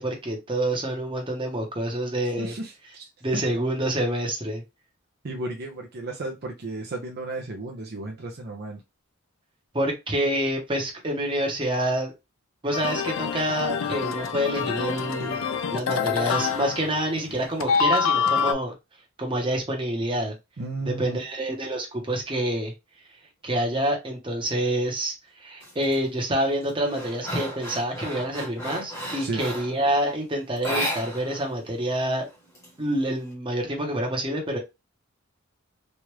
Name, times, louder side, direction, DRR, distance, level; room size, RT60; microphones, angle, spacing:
voice 1, 0.0-2.5 3.2-4.6 9.7-12.1 12.6-15.4 15.7-18.7 19.2-20.3 20.9-22.7 23.4-32.2 32.8-34.6, right 1 dB, 25° right, 0.9 m, -27 dB
voice 2, 2.4-3.1 5.2-8.8 20.6-21.2 29.2-29.4, right 2 dB, 50° right, 0.6 m, -34 dB
sound 1, 12.7-17.3 17.6-18.5, left 6 dB, 75° left, 0.4 m, -26 dB
sound 2, 25.6-26.0 26.4-29.8 30.6-31.5 31.8-31.9 32.3-33.2, equal, 15° left, 1.1 m, -33 dB
3.1 x 2.4 x 3.0 m
head